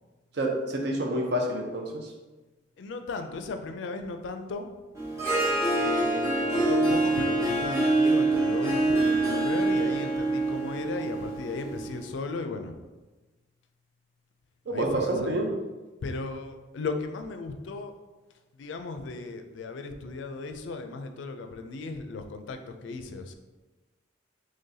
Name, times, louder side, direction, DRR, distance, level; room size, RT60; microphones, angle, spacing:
voice 1, 0.3-2.1 14.7-15.5, right 1 dB, 60° right, 1 dB, 0.6 m, -28 dB
voice 2, 2.8-4.7 5.8-12.7 14.7-15.4 16.0-17.9 18.6-23.4, left 3 dB, 80° left, 7 dB, 0.4 m, -36 dB
Harp, 4.9-12.0, right 2 dB, 15° right, 0.7 m, -25 dB
3.8 x 3.2 x 2.7 m, 1.2 s
head